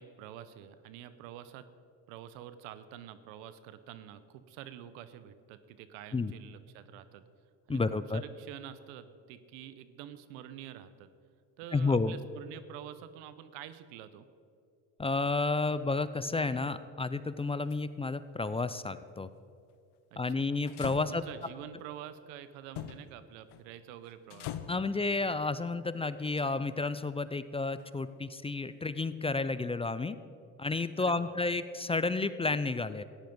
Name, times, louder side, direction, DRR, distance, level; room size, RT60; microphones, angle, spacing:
voice 1, 0.0-1.7 2.1-7.2 7.7-7.8 8.1-11.1 11.6-14.3 20.1-20.5 21.1-24.5 31.0-31.6, right 11 dB, 80° right, 13 dB, 0.9 m, -47 dB
voice 2, 7.7-8.2 11.7-12.1 15.0-19.3 20.2-21.2 24.7-30.2 30.6-33.0, left 3 dB, 15° left, 14 dB, 0.5 m, -31 dB
sound 1, 17.4-17.8 20.7-21.5 22.8-23.1 23.5-23.7 24.0-24.9 26.2-26.8 27.8-27.9, left 11 dB, 65° left, 0.9 m, -42 dB
14.5 x 10.5 x 5.3 m, 2.4 s
supercardioid pair, 75°, 42 cm